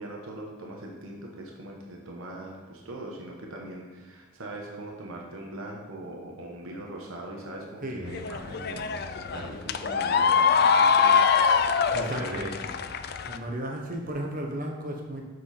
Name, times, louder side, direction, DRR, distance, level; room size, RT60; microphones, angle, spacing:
voice 1, 0.0-11.3 11.9-12.8, right 1 dB, 90° right, -1 dB, 1.2 m, -40 dB
voice 2, 7.8-8.1 11.9-12.5 13.3-15.3, right 1 dB, 40° right, 1 dB, 1.2 m, -34 dB
sound 1, 8.1-13.4, left 6 dB, 50° left, 0.4 m, -23 dB
7.6 x 6.1 x 4.3 m, 1.3 s
head